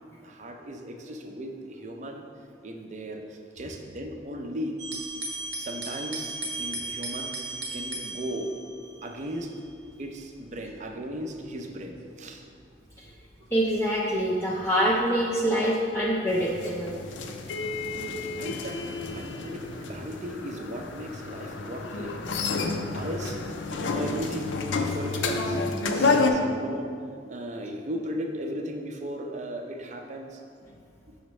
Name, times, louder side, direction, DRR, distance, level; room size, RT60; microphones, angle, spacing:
voice 1, 0.2-2.2 2.6-4.8 5.6-7.4 7.7-8.6 9.0-9.5 10.0-12.4 17.9-18.8 19.1-22.2 22.9-23.4 23.7-25.6 26.0-27.0 27.3-30.4, equal, 40° right, 3 dB, 0.5 m, -36 dB
sound 1, 4.8-14.9 15.5-16.0, right 2 dB, 85° right, 0.9 m, -38 dB
voice 2, 13.5-16.9 25.9-26.2, equal, 15° left, -5 dB, 0.4 m, -25 dB
sound 2, 16.3-26.3, left 3 dB, 85° left, 0.5 m, -30 dB
6.1 x 5.6 x 3.1 m, 2.2 s
head